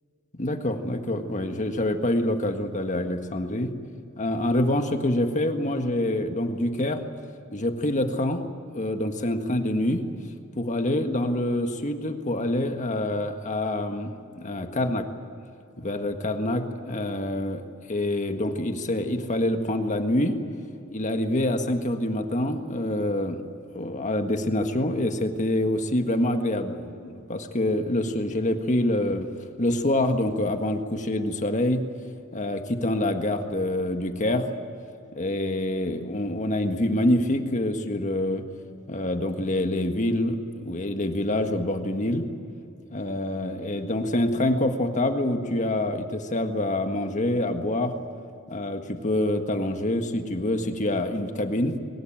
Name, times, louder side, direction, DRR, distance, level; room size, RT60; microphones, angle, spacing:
voice 1, 0.3-3.7 4.2-7.0 7.5-8.4 8.7-10.0 10.6-15.1 15.8-17.6 17.9-20.4 20.9-23.4 23.7-29.3 29.6-31.8 32.3-34.5 35.1-38.4 38.9-42.3 42.9-47.9 48.5-51.8, left 1 dB, 35° left, 6 dB, 1.6 m, -26 dB
21.5 x 19.5 x 9.1 m, 2.6 s
head